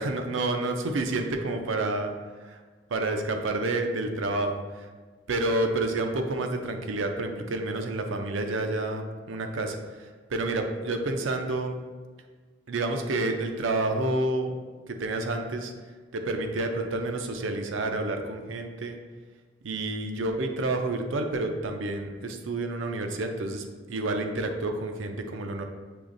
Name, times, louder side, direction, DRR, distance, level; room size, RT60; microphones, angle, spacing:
voice 1, 0.0-2.1 2.4-2.6 2.9-4.9 5.3-11.7 12.7-14.5 14.9-15.7 16.1-19.0 19.6-25.6, right 2 dB, 80° right, 5 dB, 0.5 m, -29 dB
6.6 x 3.0 x 2.5 m, 1.4 s
head